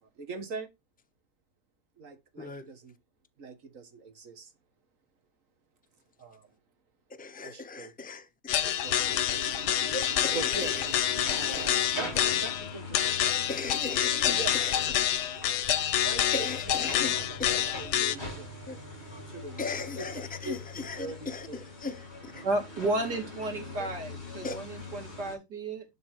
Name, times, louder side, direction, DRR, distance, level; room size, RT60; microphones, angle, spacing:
voice 1, 0.0-0.7 2.0-2.9 3.4-4.5 6.2-6.5 7.4-7.9 8.8-9.4 10.3-10.8 11.4-13.5 14.2-14.5 15.1-15.7 16.0-18.5 19.3-19.7 20.0-21.6 22.9-23.0 24.0-24.1, right 3 dB, 55° right, 1.9 m, -42 dB
voice 2, 2.4-2.7 7.2-8.7 9.9-10.9 11.5-11.8 12.1-12.3 13.5-14.8 16.3-17.6 18.7-18.8 19.6-22.5 23.8-23.9 24.4-24.6, left 3 dB, 10° left, 0.6 m, -38 dB
sound 1, 8.5-18.1, left 10 dB, 85° left, 1.4 m, -27 dB
sound 2, 8.9-25.4, left 2 dB, 40° left, 3.4 m, -42 dB
voice 3, 22.4-25.8, right 2 dB, 85° right, 3.7 m, -32 dB
11.5 x 4.1 x 4.8 m
omnidirectional pair, 1.7 m